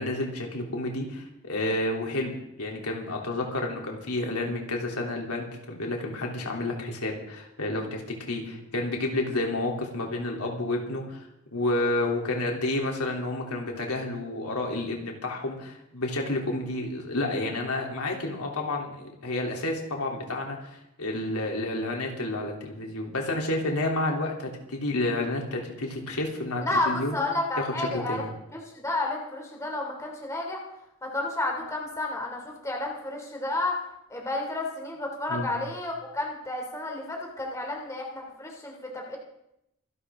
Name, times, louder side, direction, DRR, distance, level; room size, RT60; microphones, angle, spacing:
voice 1, 0.0-8.0 8.3-27.1 27.6-28.3 35.3-35.5, left 2 dB, 85° left, 0 dB, 3.2 m, -30 dB
voice 2, 26.6-28.2 28.5-30.6 31.0-33.8 34.1-39.2, left 2 dB, 15° left, 0 dB, 2.9 m, -31 dB
25.5 x 12.0 x 3.7 m, 0.83 s
head